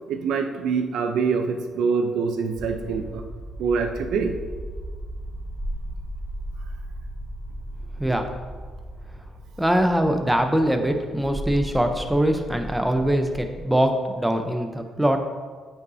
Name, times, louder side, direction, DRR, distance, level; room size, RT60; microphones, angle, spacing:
voice 1, 0.1-3.2 3.6-4.3, right 5 dB, 80° right, 6 dB, 0.6 m, -25 dB
sound 1, 2.6-13.7, right 1 dB, 30° right, 1.0 m, -36 dB
voice 2, 8.0-8.3 9.6-15.2, right 1 dB, 5° right, 5 dB, 0.8 m, -22 dB
8.7 x 5.6 x 2.8 m, 1.5 s
cardioid pair, 90°, 0 cm